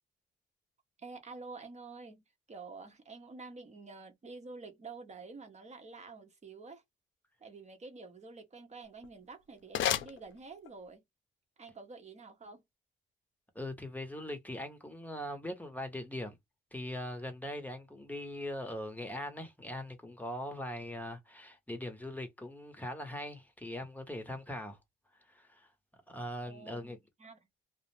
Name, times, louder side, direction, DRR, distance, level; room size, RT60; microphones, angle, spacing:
voice 1, 1.0-6.8 7.4-11.0 11.6-12.6 26.5-26.9 27.2-27.4, right 4 dB, 35° right, 0.8 m, -49 dB
sound 1, 8.8-10.9, left 11 dB, 75° left, 0.5 m, -36 dB
voice 2, 13.5-16.4 16.7-24.8 25.3-25.7 26.1-27.0, left 1 dB, 10° left, 0.8 m, -41 dB
2.4 x 2.1 x 3.0 m
cardioid pair, 90°, 20 cm